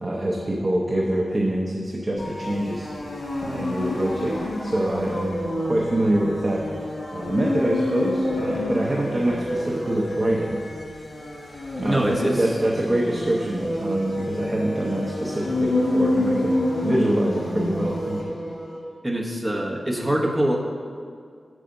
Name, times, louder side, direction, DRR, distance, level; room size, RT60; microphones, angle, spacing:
voice 1, 0.0-2.9 3.4-6.6 7.1-10.6 11.7-16.6 16.8-18.4, right 1 dB, 30° right, -2 dB, 0.8 m, -25 dB
sound 1, 2.2-18.8, left 1 dB, 60° left, 1.8 m, -28 dB
voice 2, 11.8-12.4 19.0-20.6, right 1 dB, 15° right, -1 dB, 1.0 m, -23 dB
6.9 x 4.8 x 6.4 m, 2.1 s
wide cardioid pair, 115°, 0 cm